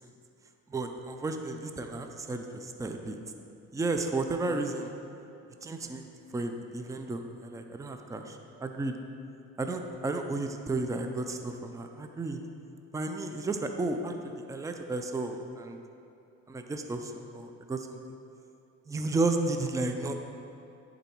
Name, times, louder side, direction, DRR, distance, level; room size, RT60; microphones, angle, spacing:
voice 1, 0.7-3.2 3.7-4.9 5.6-8.9 9.6-12.4 12.9-15.8 16.5-18.0 18.9-20.2, right 2 dB, 10° right, 5 dB, 0.5 m, -33 dB
10.0 x 3.9 x 4.5 m, 2.7 s
cardioid pair, 90°, 30 cm